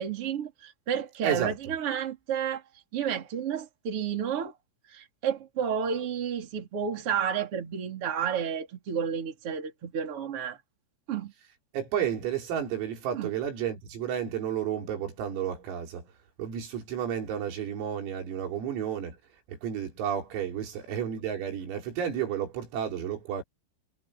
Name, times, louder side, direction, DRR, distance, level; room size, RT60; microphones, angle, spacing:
voice 1, 0.0-2.6 2.9-4.5 4.9-10.6 11.1-11.3 13.1-13.3, right 8 dB, 30° right, 3.8 m, -31 dB
voice 2, 1.2-1.5 11.7-16.1 16.4-19.2 19.5-23.4, right 9 dB, 80° right, 6.9 m, -32 dB
omnidirectional pair, 6.0 m